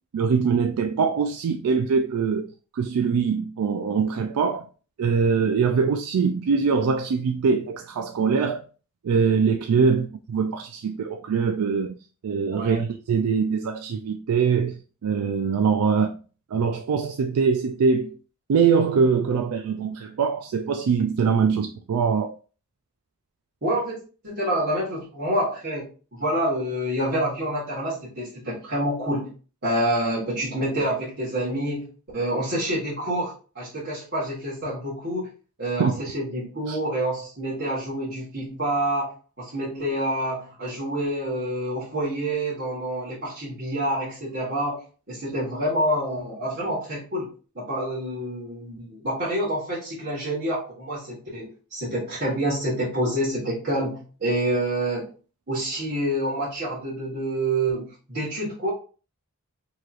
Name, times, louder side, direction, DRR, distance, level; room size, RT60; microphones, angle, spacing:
voice 1, 0.1-4.7 5.0-8.6 9.0-12.0 12.2-16.2 16.5-18.2 18.5-22.3 35.8-36.0 36.7-36.8, right 5 dB, 85° right, 0.4 m, -23 dB
voice 2, 23.6-29.3 29.6-31.9 32.1-35.3 35.6-44.8 45.1-55.1 55.5-58.7, right 1 dB, 50° right, 1.5 m, -27 dB
4.7 x 3.0 x 2.4 m
head